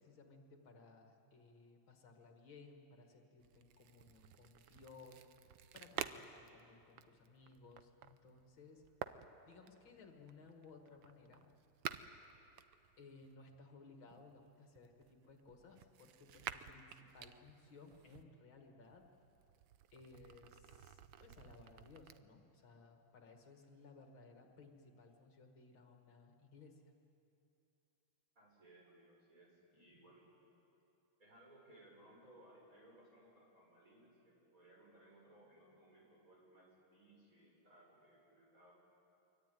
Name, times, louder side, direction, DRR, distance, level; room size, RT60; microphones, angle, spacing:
voice 1, 0.0-8.8 9.5-11.6 13.0-19.1 19.9-26.8, left 4 dB, 65° left, 3 dB, 2.7 m, -60 dB
sound 1, 3.4-13.3 14.1-18.2 18.8-22.2, right 10 dB, 70° right, 1.5 m, -52 dB
voice 2, 28.4-30.3 31.2-38.7, right 1 dB, 40° right, -3 dB, 7.1 m, -64 dB
25.0 x 24.0 x 9.3 m, 2.8 s
omnidirectional pair, 2.3 m